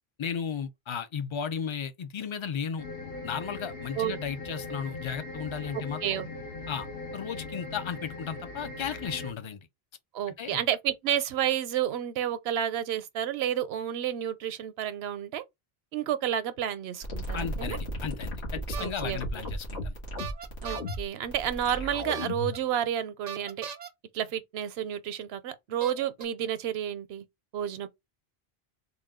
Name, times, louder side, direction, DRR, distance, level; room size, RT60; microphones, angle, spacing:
voice 1, 0.2-2.8 3.2-6.0 6.7-6.9 7.1-9.7 10.4-10.6 17.3-20.0, left 7 dB, 45° left, 0.4 m, -35 dB
sound 1, 2.8-9.3, left 2 dB, 70° left, 1.1 m, -40 dB
voice 2, 5.7-6.4 10.1-15.4 15.9-17.8 18.8-19.2 20.6-23.7 24.1-27.3 27.5-27.9, right 10 dB, 80° right, 0.8 m, -30 dB
sound 2, 17.0-22.6, equal, 90° left, 1.6 m, -35 dB
sound 3, 18.7-19.0 20.2-21.0 22.1-22.6 23.3-23.9 25.0-25.1 25.8-26.2, right 8 dB, 50° right, 0.5 m, -39 dB
3.7 x 2.2 x 3.5 m
omnidirectional pair, 1.1 m